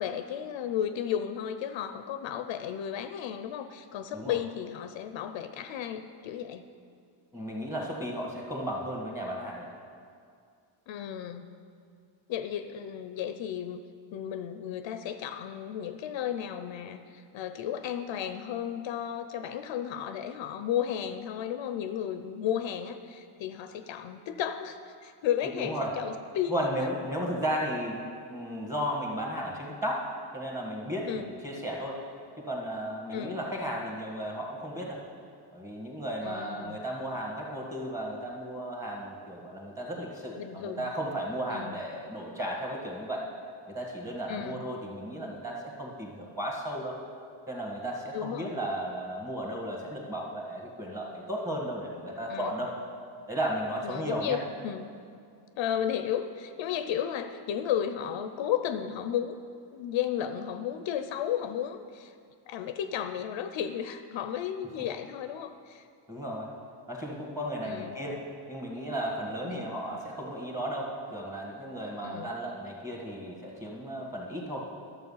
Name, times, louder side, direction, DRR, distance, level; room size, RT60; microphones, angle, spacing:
voice 1, 0.0-6.6 10.9-11.5 12.3-13.8 14.1-26.6 31.1-31.3 33.1-33.4 36.2-36.8 40.4-40.9 41.5-41.8 44.3-44.6 48.1-48.6 52.3-52.5 53.8-54.9 55.6-59.4 59.7-62.1 62.5-65.9 67.6-68.0 69.4-69.7 72.0-72.3, left 9 dB, 65° left, 9 dB, 0.6 m, -33 dB
voice 2, 7.3-9.7 25.5-25.9 26.5-28.0 28.3-32.0 32.4-35.0 35.5-43.3 43.7-47.0 47.5-52.8 53.3-54.4 66.1-66.5 66.9-74.7, equal, 5° right, -2 dB, 1.6 m, -34 dB
11.5 x 7.0 x 5.5 m, 2.3 s
cardioid pair, 155°, 49 cm